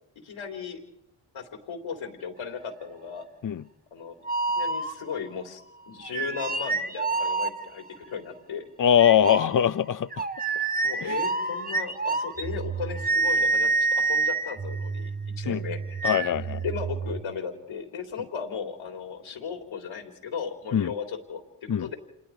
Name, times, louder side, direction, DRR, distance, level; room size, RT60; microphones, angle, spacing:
voice 1, 0.2-0.8 1.3-3.3 3.9-4.2 4.6-5.6 5.9-8.6 10.8-16.0 16.6-22.0, left 6 dB, 75° left, 3.6 m, -36 dB
sound 1, 4.2-5.3 6.0-8.0 9.0-17.2, right 4 dB, 15° right, 1.2 m, -28 dB
voice 2, 8.8-10.3 11.0-11.2 15.5-15.6 16.0-16.6 20.7-20.9 21.7-21.9, left 9 dB, 40° left, 0.8 m, -22 dB
27.5 x 21.0 x 4.8 m
supercardioid pair, 50°, 50 cm